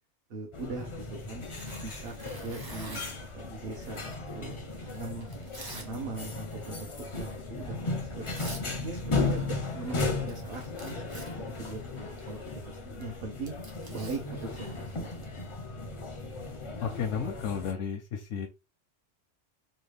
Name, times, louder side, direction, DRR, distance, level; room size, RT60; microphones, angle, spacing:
voice 1, 0.3-1.5 1.8-3.0 3.3-5.3 5.7-8.5 8.8-12.4 12.7-13.5 13.9-15.2, right 3 dB, 60° right, 0 dB, 0.9 m, -40 dB
sound 1, 0.5-17.7, left 3 dB, 40° left, 0.4 m, -36 dB
Tearing, 1.5-3.3 4.0-5.9 6.2-6.6 7.0-7.2 7.9-8.0 8.3-8.7 8.9-9.8 10.1-15.2, right 2 dB, 25° right, 0.6 m, -48 dB
voice 2, 16.8-18.5, left 7 dB, 90° left, 4 dB, 0.9 m, -33 dB
3.2 x 2.3 x 3.2 m, 0.28 s
omnidirectional pair, 1.2 m